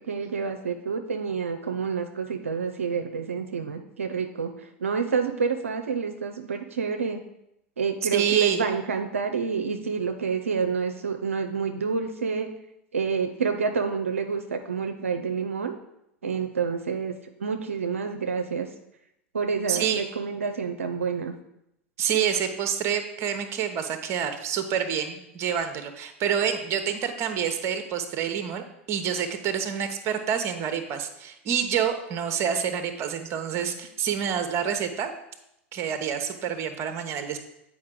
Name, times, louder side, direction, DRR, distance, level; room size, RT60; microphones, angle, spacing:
voice 1, 0.1-7.2 7.8-12.5 12.9-15.8 16.2-17.1 17.4-18.7 19.3-21.3, right 5 dB, 85° right, 5 dB, 0.5 m, -28 dB
voice 2, 8.1-8.6 19.7-20.0 22.0-35.1 35.7-37.4, right 8 dB, 45° right, 7 dB, 0.9 m, -27 dB
8.5 x 4.8 x 3.8 m, 0.82 s
hypercardioid pair, 90°, 7 cm